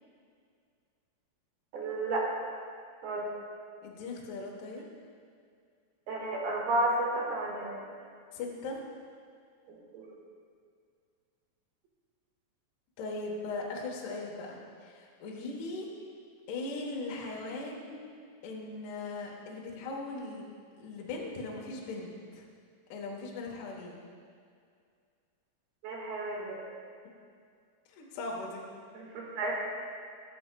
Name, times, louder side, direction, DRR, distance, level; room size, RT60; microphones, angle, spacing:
voice 1, 1.7-2.3 3.0-3.3 6.1-7.8 9.9-10.2 25.8-26.6 28.9-29.5, right 2 dB, 60° right, -3 dB, 2.9 m, -32 dB
voice 2, 3.8-4.8 8.3-8.8 13.0-15.9 16.5-18.0 18.4-20.5 20.8-22.4 22.9-24.0 27.9-28.6, left 3 dB, 70° left, -2 dB, 2.7 m, -39 dB
14.5 x 12.0 x 2.2 m, 2.2 s
omnidirectional pair, 5.9 m